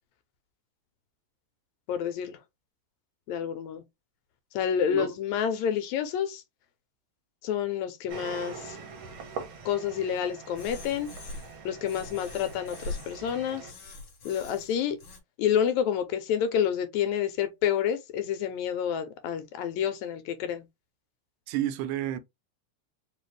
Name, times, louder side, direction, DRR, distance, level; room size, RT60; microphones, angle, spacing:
voice 1, 1.9-2.4 3.3-3.8 4.5-6.4 7.4-8.8 9.6-11.1 11.6-13.7 14.2-15.0 15.4-20.6, left 8 dB, 75° left, 1.9 m, -29 dB
sound 1, 8.1-13.7, right 5 dB, 60° right, 1.3 m, -43 dB
sound 2, 10.5-11.6 11.8-13.2 13.7-15.2, left 3 dB, 50° left, 2.0 m, -42 dB
voice 2, 21.5-22.2, right 12 dB, 85° right, 2.0 m, -30 dB
4.7 x 2.4 x 3.2 m
omnidirectional pair, 3.5 m